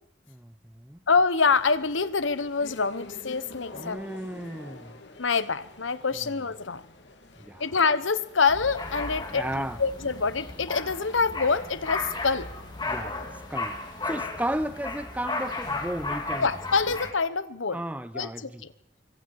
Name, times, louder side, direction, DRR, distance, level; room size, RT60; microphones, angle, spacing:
voice 1, 0.3-1.0 3.7-5.0 6.2-6.3 7.4-7.7 9.3-9.8 12.8-13.2 13.5-13.8 14.0-16.5 17.7-18.6, right 1 dB, 10° right, 0.7 m, -34 dB
voice 2, 1.1-4.2 5.2-6.8 7.6-12.5 16.4-17.8 18.1-18.7, left 4 dB, 85° left, 1.1 m, -26 dB
sound 1, 1.4-15.9, left 2 dB, 65° left, 2.6 m, -49 dB
sound 2, 8.5-17.1, left 2 dB, 20° left, 2.9 m, -35 dB
25.5 x 24.5 x 4.8 m
head